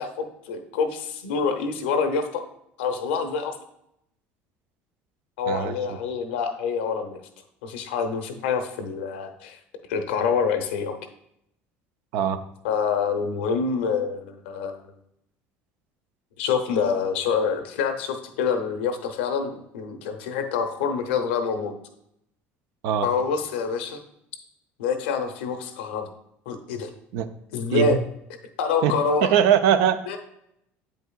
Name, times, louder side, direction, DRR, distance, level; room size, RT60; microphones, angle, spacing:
voice 1, 0.0-2.4 2.8-3.6 5.4-7.2 7.6-9.6 9.9-11.0 12.6-14.8 16.4-21.7 23.0-24.0 24.8-26.1 26.5-26.9 27.5-28.0 28.6-29.3 30.1-30.2, left 5 dB, 90° left, 7 dB, 0.7 m, -26 dB
voice 2, 29.2-30.2, right 9 dB, 75° right, 11 dB, 0.5 m, -21 dB
7.8 x 5.4 x 2.3 m, 0.78 s
supercardioid pair, 85°, 6 cm